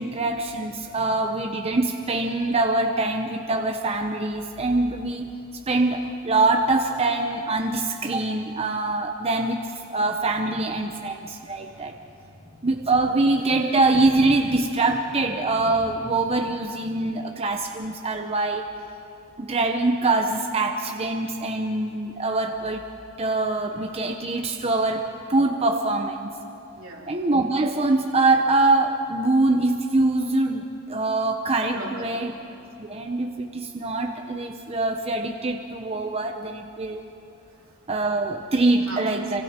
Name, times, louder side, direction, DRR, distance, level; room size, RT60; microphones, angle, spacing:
voice 1, 0.0-5.3 5.7-9.6 9.9-12.0 12.6-18.7 19.4-22.8 23.2-26.3 27.1-30.6 30.9-32.3 32.8-37.0 37.9-39.4, right 2 dB, 30° right, 3 dB, 0.9 m, -24 dB
voice 2, 11.3-12.7 26.7-27.1 31.7-32.3 37.5-37.8 38.8-39.2, right 2 dB, 75° right, -1 dB, 3.1 m, -41 dB
28.5 x 25.5 x 4.5 m, 2.8 s
head